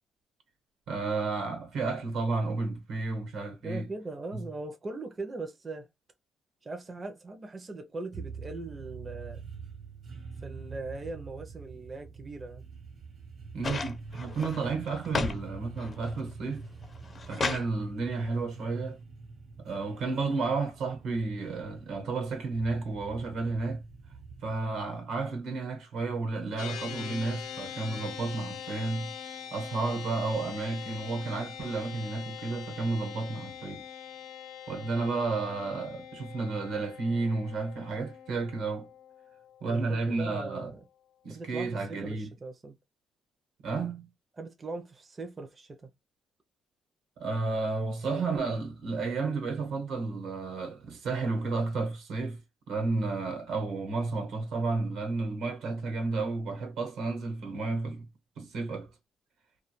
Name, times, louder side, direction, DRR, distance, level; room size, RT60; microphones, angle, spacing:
voice 1, 0.9-3.9 4.3-4.4 13.5-16.6 17.3-19.0 19.6-23.8 24.4-29.2 29.5-33.8 34.7-38.9 39.6-40.7 41.2-42.3 43.6-44.1 47.2-52.4 52.7-58.1 58.4-58.9, right 3 dB, 85° right, 1.0 m, -32 dB
voice 2, 3.6-5.9 6.6-9.4 10.4-12.6 39.7-40.8 41.3-42.8 44.4-45.9, right 3 dB, 30° right, 0.4 m, -40 dB
sound 1, 8.1-24.9, right 4 dB, 55° right, 0.8 m, -46 dB
sound 2, 13.6-15.4 15.8-16.3 16.8-17.7 18.9-19.0, left 3 dB, 40° left, 0.4 m, -33 dB
sound 3, 26.6-40.1, left 8 dB, 90° left, 0.5 m, -43 dB
2.2 x 2.1 x 2.9 m
cardioid pair, 90°, 0 cm